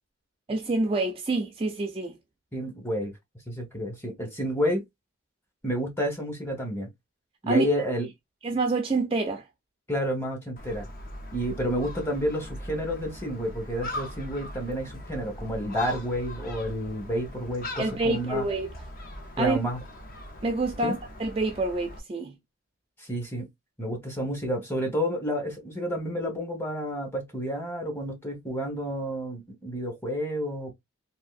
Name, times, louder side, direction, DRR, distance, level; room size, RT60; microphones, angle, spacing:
voice 1, 0.5-2.2 7.5-7.7 8.4-9.4 17.8-18.7 19.4-19.6 20.4-22.4, right 3 dB, 25° right, 0.3 m, -27 dB
voice 2, 2.5-3.1 3.5-4.8 5.6-6.9 7.4-8.1 9.9-10.9 11.3-18.5 19.4-19.8 20.8-21.0 23.0-23.5 23.8-30.7, equal, 10° left, 1.0 m, -30 dB
Gull seagull, 10.6-22.0, left 1 dB, 40° left, 0.6 m, -40 dB
3.5 x 2.6 x 2.4 m
head